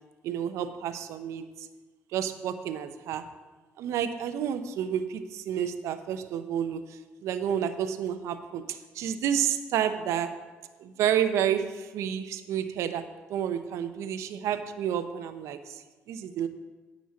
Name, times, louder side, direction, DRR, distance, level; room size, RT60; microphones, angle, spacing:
voice 1, 0.2-1.7 2.1-3.3 3.8-10.3 10.8-16.5, right 9 dB, 75° right, 9 dB, 0.8 m, -30 dB
9.5 x 5.4 x 8.1 m, 1.3 s
supercardioid pair, 65°, 5 cm